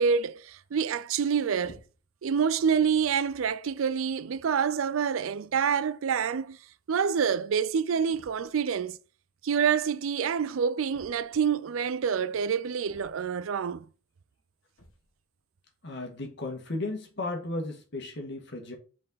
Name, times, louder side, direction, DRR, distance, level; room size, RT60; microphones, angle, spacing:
voice 1, 0.0-1.8 2.2-6.6 6.9-9.0 9.4-13.9, right 7 dB, 85° right, 0.4 m, -27 dB
sound 1, 1.6-2.2 3.0-3.2 4.0-4.1 4.3-4.6 5.8-5.9 6.1-6.2 6.5-6.6 8.1-8.6 10.9-11.6 12.9-13.5 14.7-15.2, equal, 80° left, 1.5 m, -54 dB
voice 2, 15.8-18.7, left 2 dB, 60° left, 1.7 m, -35 dB
5.4 x 4.4 x 4.0 m
head